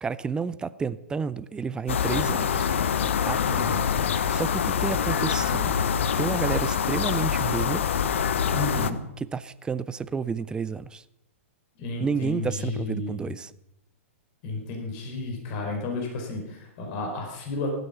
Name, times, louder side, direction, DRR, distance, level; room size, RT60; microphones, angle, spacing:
voice 1, 0.0-2.7 3.2-3.4 4.3-5.8 6.2-7.8 9.2-11.0 12.0-13.5, right 5 dB, 10° right, 17 dB, 0.6 m, -30 dB
sound 1, 1.9-8.9, left 7 dB, 60° left, 1.0 m, -25 dB
voice 2, 3.5-3.8 8.5-9.0 11.8-13.3 14.4-17.7, left 3 dB, 40° left, 1 dB, 4.6 m, -32 dB
16.0 x 12.5 x 5.8 m, 0.87 s
figure-of-eight pair, 110°, 7 cm